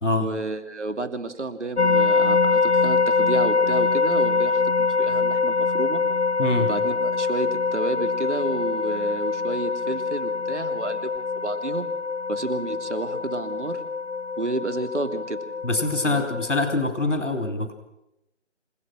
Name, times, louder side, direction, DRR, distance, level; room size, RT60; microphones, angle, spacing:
voice 1, 0.2-6.0 6.6-11.9 12.3-13.8 14.4-15.4 16.0-16.3, right 2 dB, 75° right, 9 dB, 2.8 m, -31 dB
sound 1, 1.8-16.8, left 4 dB, 65° left, 0.9 m, -24 dB
voice 2, 6.4-6.7 15.6-17.7, left 2 dB, 85° left, 6 dB, 3.1 m, -24 dB
27.0 x 16.5 x 6.3 m, 0.88 s
figure-of-eight pair, 160°, 36 cm